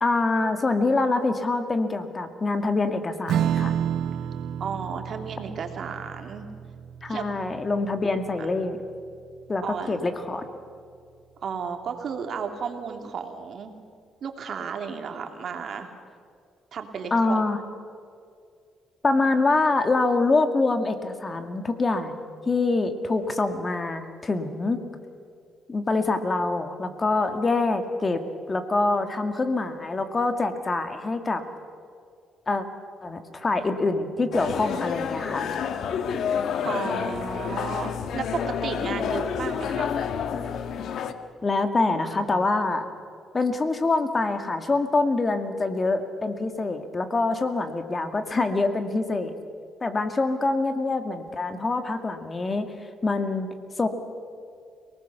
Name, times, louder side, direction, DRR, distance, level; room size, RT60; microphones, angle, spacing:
voice 1, 0.0-3.7 7.0-8.8 9.5-10.4 17.1-17.6 19.0-22.2 22.5-24.9 25.7-31.4 32.5-32.6 33.0-35.5 41.4-42.8 43.3-49.3 49.8-52.7 53.0-53.5 53.8-53.9, left 3 dB, 30° left, 8 dB, 2.1 m, -25 dB
Strum, 3.3-10.1, right 9 dB, 75° right, 0.9 m, -31 dB
voice 2, 4.6-6.5 7.1-7.2 9.6-10.1 11.4-13.7 14.2-15.9 16.7-17.4 36.6-40.0, right 6 dB, 60° right, 5 dB, 2.8 m, -33 dB
sound 1, 34.3-41.1, left 7 dB, 70° left, 1.4 m, -29 dB
29.5 x 19.0 x 6.9 m, 2.3 s
cardioid pair, 90°, 0 cm